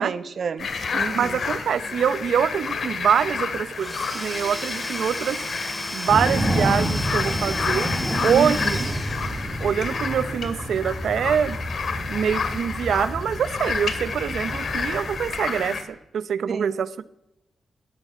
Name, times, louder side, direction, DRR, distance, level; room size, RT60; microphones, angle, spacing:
voice 1, 0.0-1.4 8.3-8.8 16.5-16.7, right 5 dB, 55° right, 12 dB, 1.0 m, -29 dB
sound 1, 0.6-15.8, left 5 dB, 60° left, 2.1 m, -30 dB
voice 2, 1.1-5.4 5.9-7.9 8.2-8.8 9.6-11.6 12.1-16.9, right 8 dB, 80° right, 16 dB, 0.6 m, -24 dB
Domestic sounds home sounds / Tools, 3.7-9.8, left 1 dB, 10° left, 3.1 m, -33 dB
sound 2, 6.1-15.4, right 1 dB, 5° right, 1.6 m, -29 dB
18.0 x 12.5 x 6.0 m, 0.93 s
wide cardioid pair, 130°, 0 cm